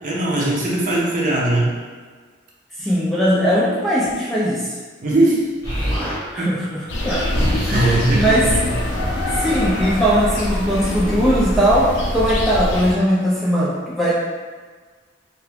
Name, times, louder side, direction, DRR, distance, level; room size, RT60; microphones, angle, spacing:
voice 1, 0.0-1.7 5.0-5.4 6.4-6.6 7.7-8.5, right 2 dB, 45° right, -4 dB, 0.6 m, -19 dB
voice 2, 2.8-4.7 6.3-7.3 7.7-8.5 9.3-14.1, equal, ahead, -7 dB, 0.4 m, -19 dB
Explosion, 5.6-6.2 7.0-10.9, equal, 20° left, 0.8 m, -27 dB
sound 1, 6.9-12.9, left 1 dB, 75° left, 0.5 m, -24 dB
2.8 x 2.2 x 3.4 m, 1.5 s
head